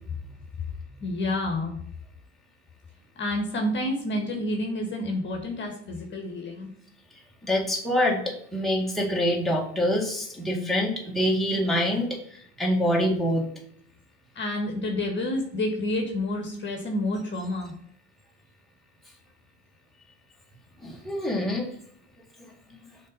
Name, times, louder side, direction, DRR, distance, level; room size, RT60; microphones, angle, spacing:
voice 1, 1.0-1.8 3.2-6.7 14.3-17.7, left 1 dB, 30° left, 2 dB, 1.6 m, -29 dB
voice 2, 7.4-13.5 20.8-21.7 22.4-22.5, equal, ahead, -2 dB, 2.0 m, -26 dB
6.4 x 4.2 x 5.4 m, 0.65 s
figure-of-eight pair, 65°, 36 cm